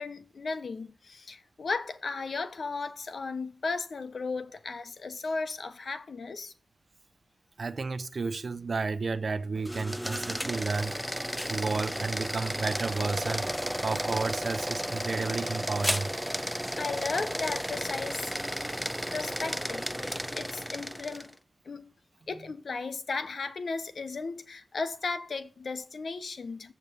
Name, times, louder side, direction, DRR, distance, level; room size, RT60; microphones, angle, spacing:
voice 1, 0.0-6.5 16.7-18.3 19.1-21.4 21.6-21.9 22.3-26.7, left 4 dB, 70° left, 1.0 m, -35 dB
voice 2, 7.6-10.9 11.5-16.1 18.8-19.1, right 4 dB, 60° right, 0.8 m, -32 dB
sound 1, 9.6-21.3, equal, ahead, 0.4 m, -33 dB
7.6 x 7.0 x 6.8 m
wide cardioid pair, 80°, 0 cm